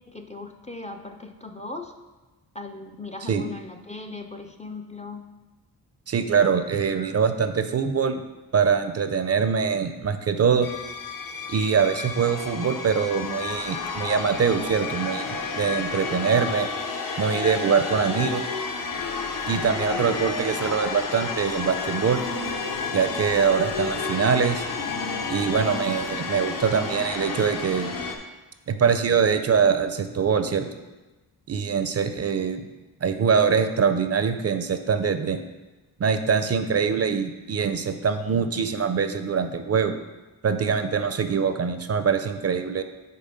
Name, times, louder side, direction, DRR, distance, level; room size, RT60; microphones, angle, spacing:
voice 1, 0.1-1.9 2.5-5.2 6.7-7.1, left 3 dB, 20° left, 4 dB, 0.4 m, -38 dB
voice 2, 6.1-8.2 8.5-10.7 11.5-15.3 15.6-16.7 17.2-18.4 19.5-22.2 22.9-24.6 25.3-27.9 28.7-30.7 31.5-32.6 33.0-35.4 36.0-39.9 40.4-42.8, right 6 dB, 40° right, 8 dB, 0.5 m, -23 dB
sound 1, 10.6-28.2, left 4 dB, 55° left, 0.9 m, -31 dB
5.5 x 4.2 x 5.2 m, 1.2 s
cardioid pair, 85°, 39 cm